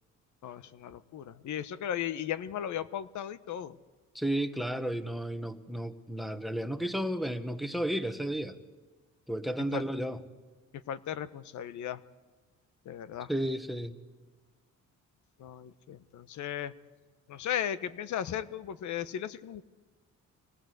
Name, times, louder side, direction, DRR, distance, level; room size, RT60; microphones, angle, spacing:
voice 1, 0.4-3.8 9.7-9.8 10.9-12.0 12.9-13.3 15.4-16.7 17.3-19.6, left 10 dB, 75° left, 1.1 m, -36 dB
voice 2, 4.1-8.6 9.3-10.2 13.3-14.0, right 1 dB, ahead, 1.4 m, -33 dB
25.5 x 19.0 x 8.0 m
cardioid pair, 90°, 30 cm